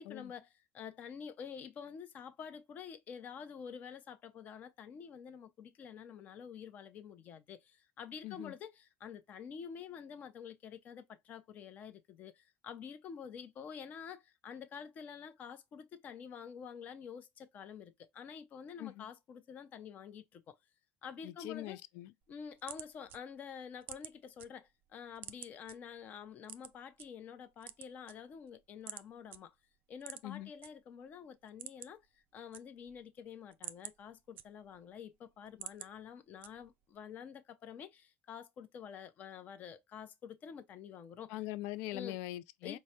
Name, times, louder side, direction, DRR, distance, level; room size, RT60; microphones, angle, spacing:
voice 1, 0.0-20.6 21.0-21.8 22.3-29.5 29.9-41.3 41.9-42.2 42.6-42.8, left 7 dB, 35° left, 0.6 m, -48 dB
voice 2, 21.2-22.1 30.2-30.5 41.3-42.8, left 16 dB, 80° left, 0.4 m, -42 dB
sound 1, 22.2-24.5 24.8-25.7 26.4-27.1 27.5-28.5 28.9-29.0 29.3-29.4 30.0-30.7 31.0-31.1 31.4-32.1 32.3-33.0 33.4-34.9 35.3-35.9 36.4-36.8, right 11 dB, 45° right, 0.3 m, -48 dB
4.7 x 2.1 x 2.7 m
cardioid pair, 165°, 5 cm